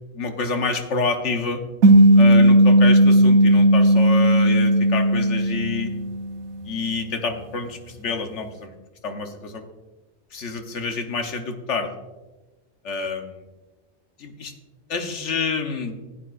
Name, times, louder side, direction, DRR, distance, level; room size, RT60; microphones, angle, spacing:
voice 1, 0.1-1.6 2.2-5.9 6.6-8.7 9.0-9.7 10.3-11.9 12.8-13.4 14.2-14.5 14.9-15.9, left 4 dB, 75° left, 5 dB, 1.3 m, -28 dB
sound 1, 1.8-6.5, right 1 dB, 80° right, 1.3 m, -15 dB
15.0 x 8.9 x 2.5 m, 1.1 s
omnidirectional pair, 1.2 m